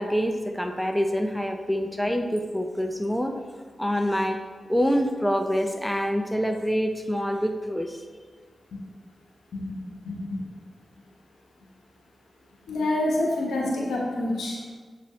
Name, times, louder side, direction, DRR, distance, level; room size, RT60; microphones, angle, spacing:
voice 1, 0.0-3.3 3.8-4.4 4.7-8.0, equal, 5° left, 5 dB, 0.5 m, -26 dB
voice 2, 10.0-10.4 12.7-14.6, left 1 dB, 85° left, -2 dB, 1.1 m, -27 dB
7.4 x 4.2 x 3.1 m, 1.5 s
supercardioid pair, 40°, 0 cm